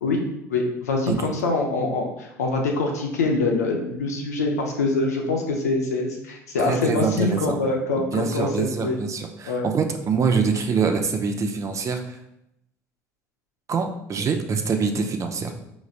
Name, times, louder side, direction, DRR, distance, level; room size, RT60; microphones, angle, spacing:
voice 1, 0.5-9.0 9.5-9.7, left 3 dB, 90° left, 1 dB, 0.7 m, -24 dB
voice 2, 6.7-7.6 8.0-12.2 13.7-15.6, right 5 dB, 40° right, 5 dB, 0.6 m, -25 dB
5.0 x 3.1 x 2.4 m, 0.81 s
hypercardioid pair, 70°, 8 cm